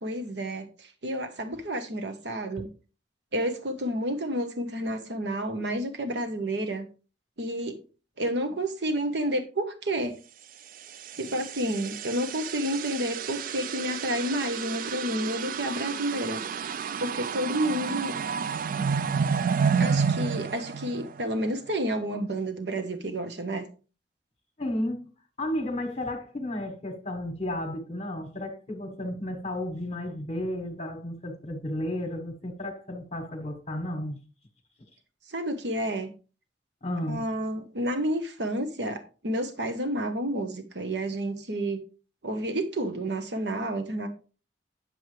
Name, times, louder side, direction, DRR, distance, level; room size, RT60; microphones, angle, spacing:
voice 1, 0.0-2.7 3.3-6.8 7.4-7.8 8.2-10.1 11.1-16.4 17.0-18.1 19.8-23.7 35.3-36.1 37.0-41.8 42.2-44.1, right 1 dB, 70° right, 1.2 m, -30 dB
sound 1, 10.8-21.5, right 6 dB, 50° right, 0.4 m, -30 dB
voice 2, 24.6-25.1 25.4-34.2 36.8-37.3, left 1 dB, 40° left, 1.4 m, -33 dB
9.5 x 7.5 x 3.3 m
head